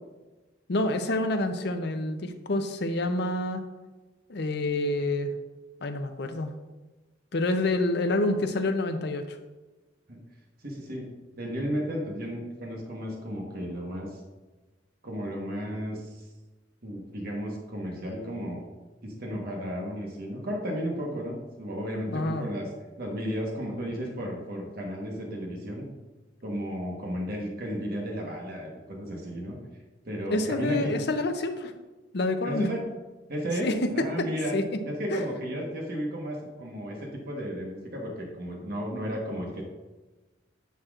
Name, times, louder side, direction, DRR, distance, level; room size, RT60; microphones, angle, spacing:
voice 1, 0.7-3.6 4.3-5.3 5.8-6.5 7.3-9.4 22.1-22.5 30.3-31.7 32.1-32.7 33.6-34.3 34.5-34.8 35.1-35.2, left 2 dB, 60° left, 7 dB, 0.6 m, -27 dB
voice 2, 10.6-11.1 11.4-14.2 15.0-16.2 16.8-18.6 19.0-22.7 23.0-25.8 26.4-29.6 30.0-30.9 32.4-32.8 33.3-34.5 34.8-39.6, equal, 50° right, -1 dB, 1.2 m, -33 dB
9.3 x 5.9 x 2.5 m, 1.2 s
head